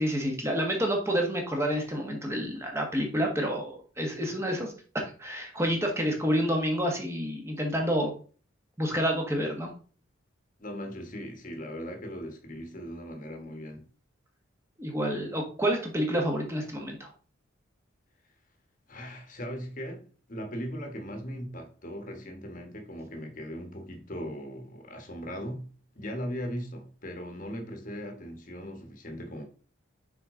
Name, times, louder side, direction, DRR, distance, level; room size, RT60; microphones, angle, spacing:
voice 1, 0.0-8.1 8.8-9.7 14.8-17.1, equal, 15° right, 1.2 m, -29 dB
voice 2, 10.6-13.8 18.9-25.7 25.9-29.4, equal, 40° left, 1.3 m, -38 dB
6.3 x 4.7 x 3.7 m
head